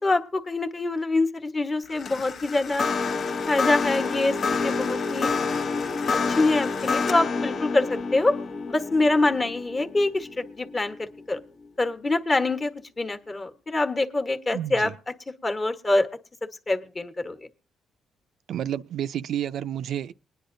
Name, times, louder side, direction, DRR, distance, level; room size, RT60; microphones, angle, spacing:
voice 1, 0.0-2.9 3.4-5.3 6.3-8.3 8.7-11.4 11.8-12.7 13.0-14.9 15.4-16.1 16.7-17.5, left 2 dB, 30° left, 1.2 m, -25 dB
sound 1, 1.9-11.2, left 4 dB, 50° left, 0.9 m, -28 dB
voice 2, 14.5-14.9 18.5-20.1, right 10 dB, 70° right, 0.5 m, -30 dB
21.0 x 10.0 x 2.6 m
cardioid pair, 90°, 0 cm